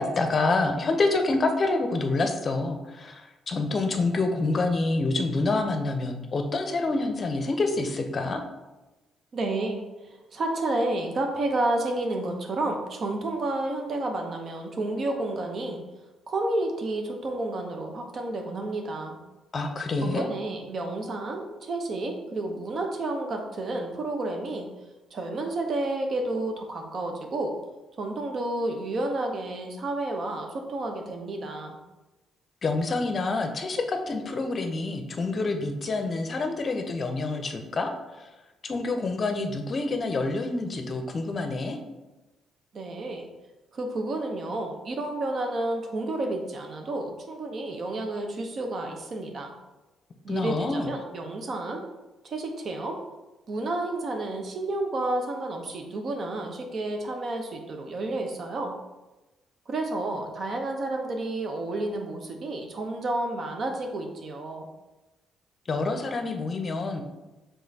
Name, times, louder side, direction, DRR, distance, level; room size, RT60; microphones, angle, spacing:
voice 1, 0.0-8.4 19.5-20.3 32.6-37.9 38.2-38.3 38.6-41.8 50.3-50.9 65.7-67.0, left 3 dB, 45° left, 5 dB, 0.6 m, -27 dB
voice 2, 9.3-9.8 10.3-15.8 16.3-19.2 20.0-24.7 25.1-27.5 28.0-31.8 42.7-43.3 43.7-49.5 50.2-51.9 52.2-53.0 53.5-58.8 59.7-64.7, right 2 dB, 55° right, 3 dB, 0.8 m, -30 dB
4.9 x 3.8 x 2.8 m, 1.1 s
cardioid pair, 80°, 0 cm